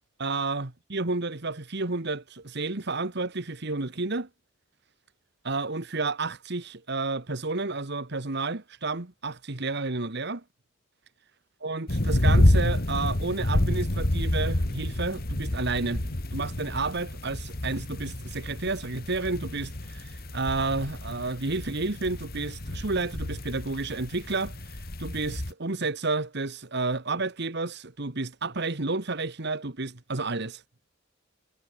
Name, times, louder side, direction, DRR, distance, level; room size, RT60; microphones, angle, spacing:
voice 1, 0.2-4.3 5.4-10.4 11.6-30.6, right 3 dB, 55° right, 1.7 m, -31 dB
sound 1, 11.9-25.5, left 1 dB, 50° left, 1.9 m, -28 dB
head